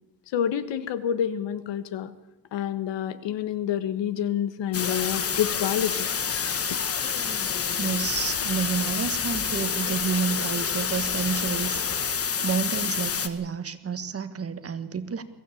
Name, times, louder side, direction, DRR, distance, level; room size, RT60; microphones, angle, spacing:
voice 1, 0.3-2.1 2.5-6.1, left 9 dB, 75° left, 14 dB, 1.5 m, -28 dB
sound 1, 4.7-13.3, left 6 dB, 30° left, 1.4 m, -28 dB
voice 2, 7.8-11.9 12.4-15.2, right 6 dB, 30° right, 11 dB, 1.5 m, -30 dB
22.5 x 15.5 x 8.6 m, 1.1 s
cardioid pair, 130°, 44 cm